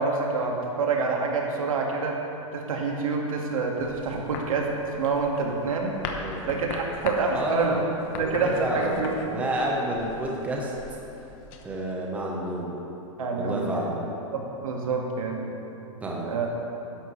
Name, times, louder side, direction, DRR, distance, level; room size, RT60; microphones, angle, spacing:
voice 1, 0.0-2.1 2.5-4.7 5.0-6.0 6.4-7.8 8.2-9.3 13.2-13.8 14.3-15.5 16.3-16.5, right 4 dB, 85° right, 0 dB, 1.9 m, -27 dB
sound 1, 3.8-11.6, left 4 dB, 30° left, 1.0 m, -40 dB
voice 2, 7.3-7.8 8.1-10.7 11.6-12.7 13.3-14.0 16.0-16.5, right 1 dB, 10° right, -2 dB, 1.1 m, -30 dB
13.0 x 11.5 x 3.3 m, 3.0 s
supercardioid pair, 160°, 17 cm